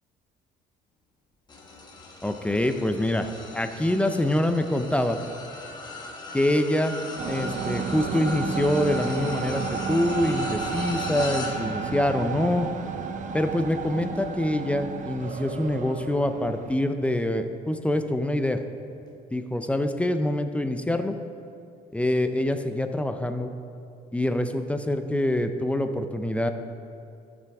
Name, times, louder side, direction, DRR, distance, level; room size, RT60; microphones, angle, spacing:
sound 1, 1.5-17.0 17.5-17.8 19.0-19.1, left 2 dB, 25° left, 1.1 m, -39 dB
voice 1, 2.2-3.3 3.5-5.2 6.3-6.9 7.3-12.7 13.3-18.6 19.3-21.1 21.9-23.5 24.1-26.5, left 1 dB, 5° left, 8 dB, 0.5 m, -25 dB
sound 2, 7.2-16.8, right 6 dB, 50° right, 0.6 m, -32 dB
13.5 x 6.1 x 3.4 m, 2.6 s
cardioid pair, 110°, 17 cm